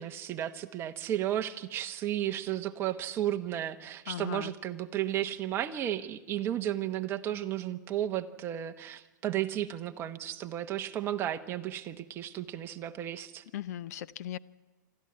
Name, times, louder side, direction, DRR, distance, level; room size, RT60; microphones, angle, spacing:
voice 1, 0.0-13.4, right 12 dB, 20° right, 8 dB, 1.0 m, -33 dB
voice 2, 4.1-4.5 13.5-14.4, left 12 dB, 55° left, 17 dB, 0.7 m, -38 dB
25.5 x 13.5 x 9.6 m, 1.2 s
hypercardioid pair, 150°, 11 cm